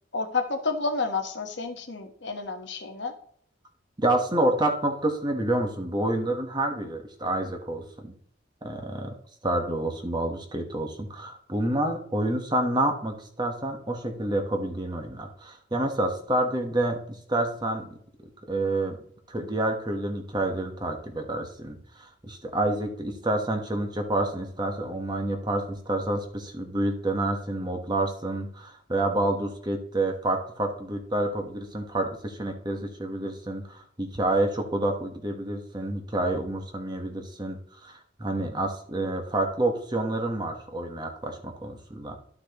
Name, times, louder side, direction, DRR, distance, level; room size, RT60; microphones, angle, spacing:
voice 1, 0.1-3.1, left 4 dB, 65° left, 5 dB, 1.2 m, -30 dB
voice 2, 4.0-8.1 8.6-9.1 9.4-17.9 18.5-19.0 19.3-42.2, right 1 dB, 20° right, 4 dB, 1.2 m, -28 dB
12.0 x 6.1 x 3.0 m, 0.62 s
head